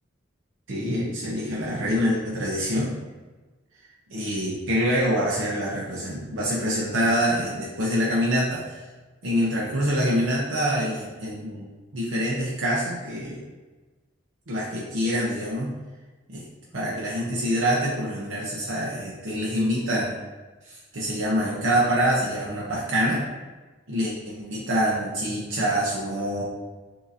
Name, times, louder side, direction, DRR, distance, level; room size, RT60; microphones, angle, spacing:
voice 1, 0.7-3.0 4.1-8.8 9.2-13.4 14.5-15.7 16.3-16.4 16.7-20.2 20.6-23.3 23.9-26.4, equal, 90° right, -5 dB, 0.8 m, -25 dB
6.5 x 2.8 x 2.7 m, 1.3 s
head